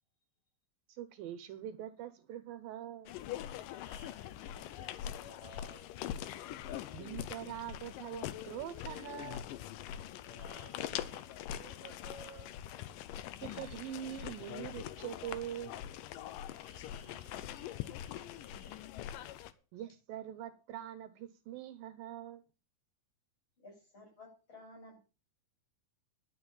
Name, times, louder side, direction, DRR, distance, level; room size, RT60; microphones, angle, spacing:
voice 1, 0.9-3.1 6.9-9.5 13.4-15.8 19.7-22.4, right 11 dB, 75° right, 2.5 m, -43 dB
sound 1, 3.1-19.5, left 11 dB, 80° left, 2.1 m, -43 dB
voice 2, 3.8-5.9 10.2-12.5 16.6-18.9 19.3-19.6, equal, 55° left, 5.3 m, -56 dB
voice 3, 23.6-25.0, left 2 dB, 30° left, 8.5 m, -54 dB
11.5 x 6.5 x 7.1 m
omnidirectional pair, 4.4 m